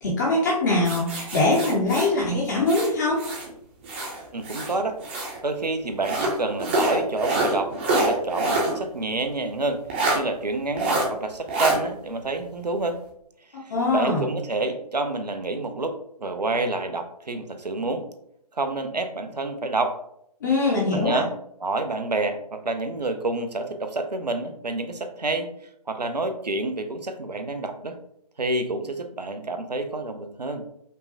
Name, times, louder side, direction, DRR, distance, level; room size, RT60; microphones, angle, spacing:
voice 1, 0.0-3.2 13.7-14.3 20.4-21.2, left 2 dB, 30° left, -4 dB, 0.7 m, -22 dB
sound 1, 0.8-3.5 3.8-5.4 6.0-8.8 9.1-9.2 9.9-10.2 10.8-11.1 11.5-11.8, right 2 dB, 15° right, 0.6 m, -26 dB
voice 2, 4.3-5.0 5.4-13.0 13.7-18.1 18.6-20.0 20.9-21.3 21.6-25.5 25.9-28.0 28.4-30.6, right 2 dB, 80° right, 7 dB, 0.6 m, -28 dB
5.2 x 2.2 x 2.7 m, 0.73 s
figure-of-eight pair, 140°, 21 cm